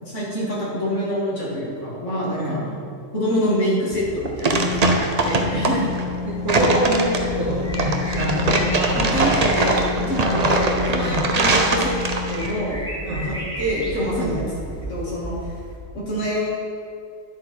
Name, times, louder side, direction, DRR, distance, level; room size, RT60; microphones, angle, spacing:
voice 1, 0.0-2.8 3.1-5.9 8.5-8.6 8.9-12.0 12.3-12.8 13.1-15.3 15.9-16.5, equal, 60° left, -6 dB, 2.8 m, -26 dB
sound 1, 3.9-12.5, right 2 dB, 35° right, 0.7 m, -22 dB
sound 2, 4.5-12.5, left 5 dB, 75° left, 1.6 m, -30 dB
voice 2, 6.3-9.3 10.3-10.5 11.0-11.3 13.0-13.4 14.2-14.4, right 1 dB, 65° right, -9 dB, 2.2 m, -26 dB
sound 3, 7.0-15.8, right 1 dB, 5° left, 1.5 m, -33 dB
10.0 x 7.7 x 4.5 m, 2.3 s
omnidirectional pair, 1.4 m